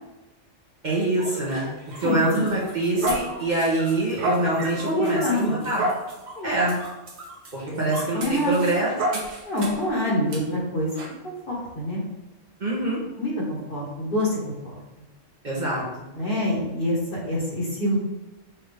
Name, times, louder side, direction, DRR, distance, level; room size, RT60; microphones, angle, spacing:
voice 1, 0.8-1.7 2.0-5.8 6.4-6.8 7.5-9.2 12.6-13.0 15.4-16.1, right 2 dB, 40° right, -5 dB, 1.0 m, -25 dB
sound 1, 1.2-9.9 10.3-10.4 11.0-11.1, right 1 dB, 65° right, 1.1 m, -32 dB
voice 2, 2.0-2.4 4.4-5.6 6.4-6.5 7.7-8.6 9.4-10.9 11.2-12.0 13.2-14.7 16.1-17.0 17.2-18.0, left 1 dB, 50° left, -4 dB, 1.4 m, -26 dB
5.8 x 2.6 x 3.4 m, 1.0 s
omnidirectional pair, 1.3 m